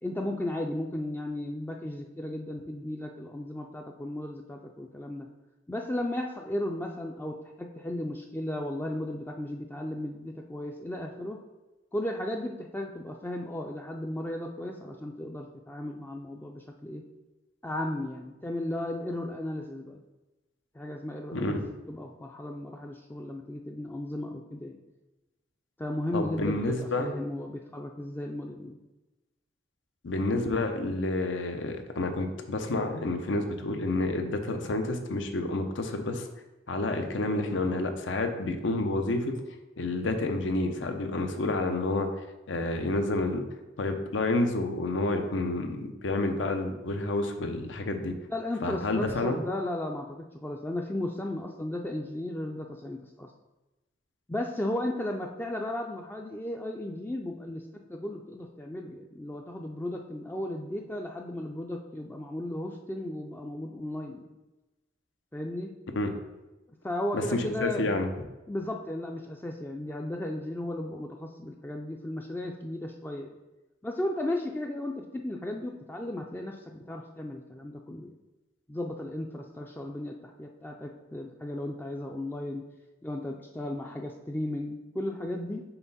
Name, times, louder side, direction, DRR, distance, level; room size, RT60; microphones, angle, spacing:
voice 1, 0.0-5.3 5.7-11.4 11.9-17.0 17.6-20.0 20.7-24.8 25.8-28.8 48.3-53.3 54.3-64.3 65.3-65.7 66.8-67.9 68.5-73.4 73.8-78.1 78.7-82.7 83.0-85.6, left 1 dB, 10° left, 1 dB, 0.4 m, -35 dB
voice 2, 21.3-21.6 26.1-27.1 30.0-36.3 36.7-39.4 39.8-42.1 42.5-43.5 43.8-48.1 48.6-49.4 66.0-66.1 67.1-68.1, left 2 dB, 80° left, 6 dB, 0.7 m, -29 dB
5.8 x 4.3 x 4.1 m, 1.1 s
head